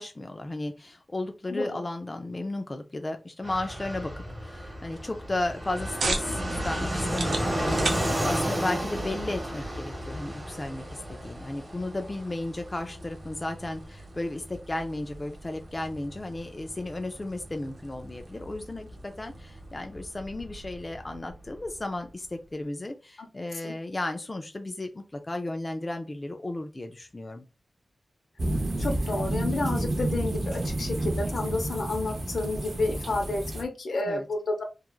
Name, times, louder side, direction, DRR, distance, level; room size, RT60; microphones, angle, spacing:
voice 1, 0.0-4.1 4.4-27.5 34.1-34.3, left 2 dB, 25° left, 5 dB, 0.3 m, -34 dB
voice 2, 1.5-1.8 23.2-23.3 23.6-23.7 28.8-34.6, left 2 dB, 75° left, 3 dB, 0.7 m, -30 dB
Fixed-wing aircraft airplane, 3.4-21.8, equal, 20° right, 1.0 m, -34 dB
sound 1, 5.4-20.5, right 3 dB, 80° right, 0.5 m, -40 dB
sound 2, 28.4-33.6, right 1 dB, 40° right, 0.6 m, -30 dB
3.0 x 2.3 x 2.3 m, 0.30 s
wide cardioid pair, 115°, 0 cm